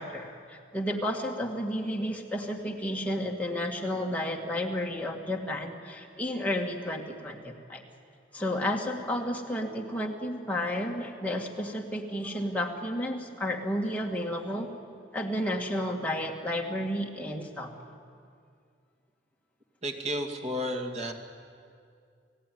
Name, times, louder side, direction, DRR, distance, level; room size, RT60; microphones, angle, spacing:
voice 1, 0.0-7.8 8.3-14.7 15.1-17.7, left 1 dB, 10° left, 0 dB, 2.1 m, -32 dB
voice 2, 19.8-21.1, equal, 35° right, 4 dB, 2.2 m, -32 dB
29.0 x 17.0 x 9.5 m, 2.3 s
head